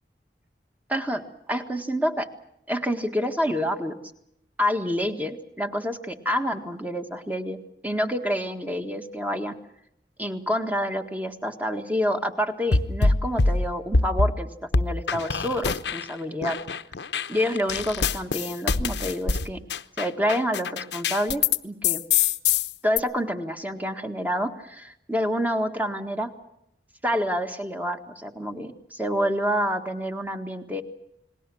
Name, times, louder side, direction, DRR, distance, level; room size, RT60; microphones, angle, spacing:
voice 1, 0.9-2.3 2.7-4.0 4.6-7.6 7.8-9.5 10.2-16.6 17.3-19.6 20.0-22.0 22.8-26.3 27.0-30.8, equal, 10° right, 6 dB, 1.7 m, -28 dB
sound 1, 12.7-14.4 14.7-16.1 16.4-21.6 21.8-23.0, left 4 dB, 75° left, 0.9 m, -24 dB
29.0 x 20.5 x 6.3 m, 0.79 s
head